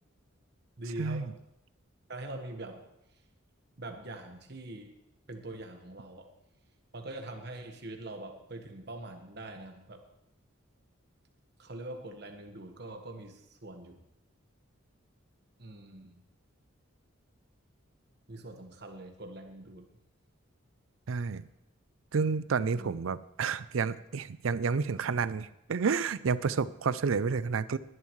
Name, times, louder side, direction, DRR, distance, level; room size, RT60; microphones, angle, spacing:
voice 1, 0.8-1.3 2.1-2.9 3.8-4.9 5.3-6.3 6.9-10.0 11.6-14.0 15.6-16.2 18.3-19.9 22.5-23.0, right 2 dB, 50° right, 4 dB, 1.4 m, -43 dB
voice 2, 21.1-21.5 22.1-27.8, right 5 dB, 75° right, 16 dB, 0.5 m, -30 dB
20.0 x 11.0 x 3.2 m, 0.84 s
head